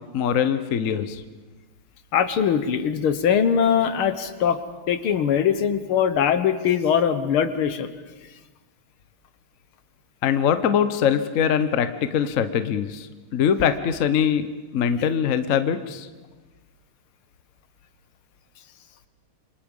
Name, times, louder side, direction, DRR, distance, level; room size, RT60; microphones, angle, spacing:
voice 1, 0.1-1.2 10.2-14.5 14.7-16.1, left 8 dB, 50° left, 10 dB, 1.1 m, -22 dB
voice 2, 2.1-4.6 4.9-7.9, left 8 dB, 80° left, 11 dB, 2.0 m, -21 dB
27.5 x 25.0 x 5.4 m, 1.3 s
omnidirectional pair, 2.3 m